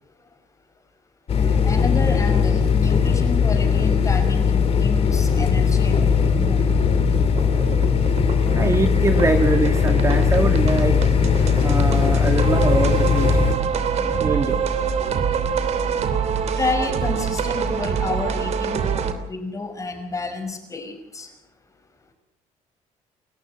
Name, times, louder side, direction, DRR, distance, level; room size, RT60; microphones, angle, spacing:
sound 1, 1.3-13.5, left 6 dB, 50° left, 2.9 m, -19 dB
voice 1, 1.3-6.6 16.6-18.9 19.2-21.3, left 3 dB, 25° left, 6 dB, 5.5 m, -29 dB
sound 2, 5.1-19.1, right 6 dB, 55° right, 2.7 m, -26 dB
voice 2, 8.5-11.0 11.6-13.5 14.2-14.6, right 3 dB, 20° right, 6 dB, 2.0 m, -23 dB
29.0 x 14.5 x 7.9 m, 0.81 s
cardioid pair, 125°, 13 cm